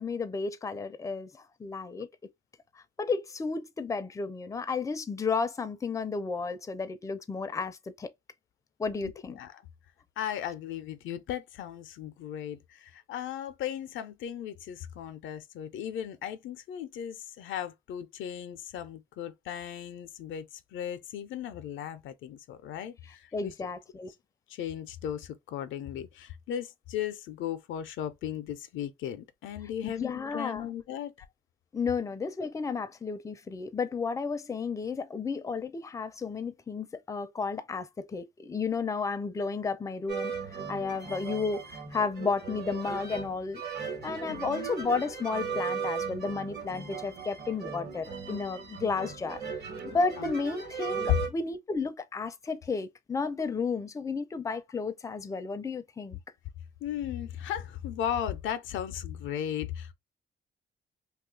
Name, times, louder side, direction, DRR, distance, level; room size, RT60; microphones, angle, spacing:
voice 1, 0.0-2.1 3.0-8.1 8.8-9.4 23.3-24.1 29.8-30.7 31.7-43.6 44.0-49.4 49.8-56.2, left 4 dB, 15° left, 0.4 m, -32 dB
voice 2, 9.0-9.5 10.2-23.5 24.5-31.1 44.3-44.7 50.2-50.3 56.8-59.9, left 10 dB, 80° left, 0.5 m, -37 dB
sound 1, 40.1-51.3, right 6 dB, 55° right, 1.1 m, -37 dB
2.6 x 2.3 x 3.6 m
cardioid pair, 90°, 20 cm